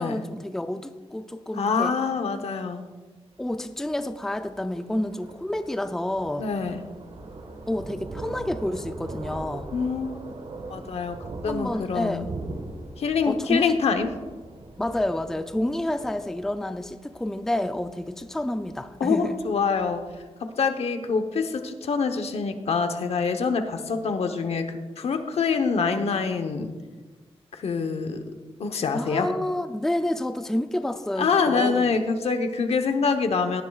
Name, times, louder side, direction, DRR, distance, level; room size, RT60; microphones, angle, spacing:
voice 1, 0.0-1.9 3.4-6.5 7.7-9.7 11.5-12.3 13.2-13.8 14.8-19.4 28.9-31.9, left 1 dB, 5° left, 8 dB, 0.4 m, -29 dB
voice 2, 1.6-2.9 6.4-6.8 9.7-10.2 10.7-11.2 11.4-12.3 13.0-14.1 19.0-20.0 20.6-26.7 27.5-28.2 28.6-29.3 31.2-33.6, left 5 dB, 75° left, 7 dB, 1.0 m, -25 dB
Thunder, 3.3-20.2, right 2 dB, 70° right, 1.4 m, -41 dB
17.5 x 11.0 x 2.4 m, 1.3 s
wide cardioid pair, 165°, 11 cm